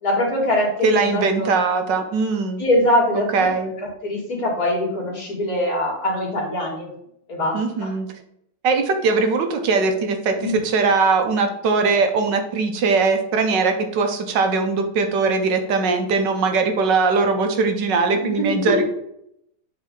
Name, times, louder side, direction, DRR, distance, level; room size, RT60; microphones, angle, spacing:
voice 1, 0.0-1.5 2.6-3.5 3.8-6.9 7.3-7.9 10.4-10.6 18.4-18.8, left 1 dB, 55° left, -3 dB, 2.6 m, -23 dB
voice 2, 0.8-2.6 3.3-3.7 7.5-8.1 8.6-18.8, right 4 dB, 75° right, 5 dB, 1.5 m, -20 dB
7.5 x 4.4 x 3.8 m, 0.76 s
omnidirectional pair, 2.0 m